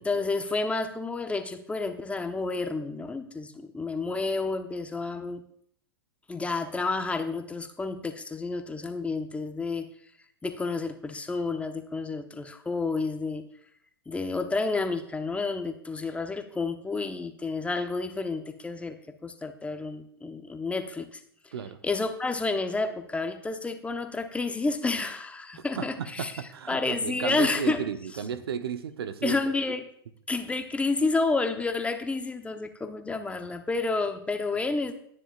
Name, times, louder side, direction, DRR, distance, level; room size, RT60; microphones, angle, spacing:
voice 1, 0.0-5.4 6.3-9.8 10.4-13.5 14.1-19.0 19.2-21.2 21.8-26.3 26.7-27.8 29.2-29.8 30.3-34.9, left 3 dB, 10° left, 7 dB, 0.9 m, -30 dB
voice 2, 25.5-29.4, right 7 dB, 70° right, 11 dB, 0.9 m, -34 dB
24.5 x 10.0 x 2.4 m, 0.65 s
hypercardioid pair, 105°, 13 cm